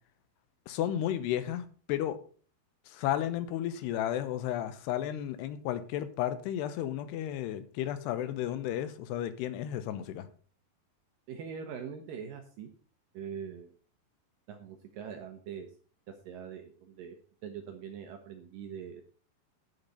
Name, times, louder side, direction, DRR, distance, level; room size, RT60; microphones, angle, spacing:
voice 1, 0.7-2.2 2.9-10.3, left 11 dB, 80° left, 3.0 m, -33 dB
voice 2, 11.3-12.7 13.1-13.7 14.5-15.7 16.2-17.2 17.4-19.0, right 7 dB, 70° right, 2.3 m, -42 dB
10.0 x 6.7 x 5.5 m
omnidirectional pair, 4.8 m